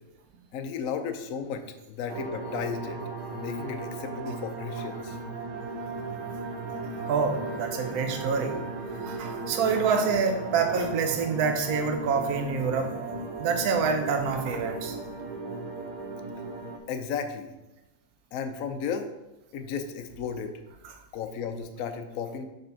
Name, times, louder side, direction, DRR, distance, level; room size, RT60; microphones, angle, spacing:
voice 1, 0.5-3.0 3.3-5.2 16.9-17.5 18.3-19.1 19.5-20.6 21.1-22.4, left 6 dB, 65° left, 6 dB, 0.8 m, -34 dB
sound 1, 2.1-16.8, right 3 dB, 85° right, 1.6 m, -36 dB
voice 2, 7.0-8.6 9.0-12.9 13.4-15.0 20.8-20.9, right 5 dB, 60° right, 4 dB, 1.2 m, -27 dB
5.2 x 4.3 x 5.7 m, 0.99 s
omnidirectional pair, 2.2 m